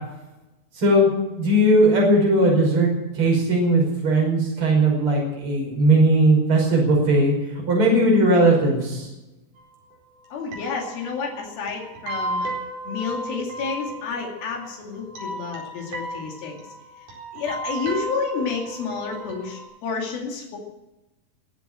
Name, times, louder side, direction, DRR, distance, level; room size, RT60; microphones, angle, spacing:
voice 1, 0.7-2.9 3.1-7.3 7.7-9.1, right 1 dB, 35° right, -1 dB, 6.2 m, -18 dB
sound 1, 9.6-9.7 9.9-10.0 10.2-10.3 10.5-19.6, right 1 dB, 60° right, 5.8 m, -34 dB
voice 2, 10.3-12.5 12.9-16.6 17.0-17.1 17.3-20.6, left 5 dB, 85° left, -1 dB, 4.3 m, -30 dB
22.5 x 8.1 x 7.5 m, 0.99 s
omnidirectional pair, 4.1 m